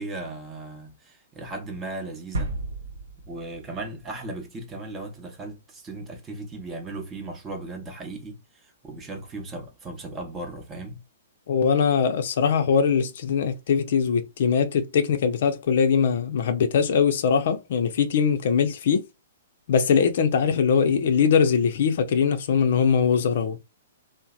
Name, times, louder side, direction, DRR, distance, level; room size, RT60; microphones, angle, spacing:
voice 1, 0.0-2.5 3.3-11.0, right 2 dB, 20° right, 0.8 m, -37 dB
sound 1, 2.3-4.2 4.5-4.6, right 2 dB, 75° right, 0.8 m, -33 dB
voice 2, 11.5-19.0 19.7-23.6, left 6 dB, 60° left, 0.5 m, -21 dB
2.7 x 2.0 x 2.2 m
hypercardioid pair, 125°, 0 cm